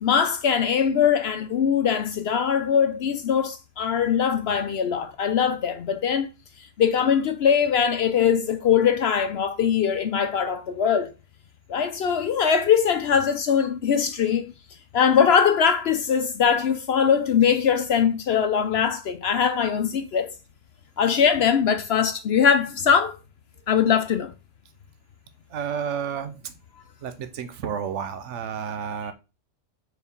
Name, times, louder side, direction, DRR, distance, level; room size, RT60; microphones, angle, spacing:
voice 1, 0.0-6.3 6.8-11.1 11.7-14.5 14.9-20.3 21.0-23.2 23.7-24.3, left 7 dB, 65° left, 0.8 m, -21 dB
voice 2, 25.5-26.4 27.0-29.1, right 7 dB, 85° right, 1.1 m, -31 dB
4.6 x 4.4 x 5.3 m
omnidirectional pair, 1.2 m